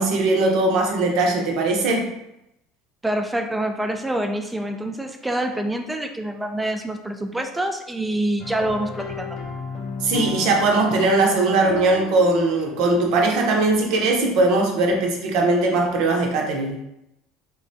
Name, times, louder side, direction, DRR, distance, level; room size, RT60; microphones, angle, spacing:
voice 1, 0.0-2.1 10.0-16.8, right 2 dB, 70° right, 1 dB, 0.6 m, -20 dB
voice 2, 3.0-9.4, right 1 dB, 10° right, 5 dB, 0.3 m, -26 dB
sound 1, 8.4-14.0, left 5 dB, 50° left, 0.5 m, -34 dB
3.5 x 2.2 x 2.6 m, 0.84 s
supercardioid pair, 115°, 0 cm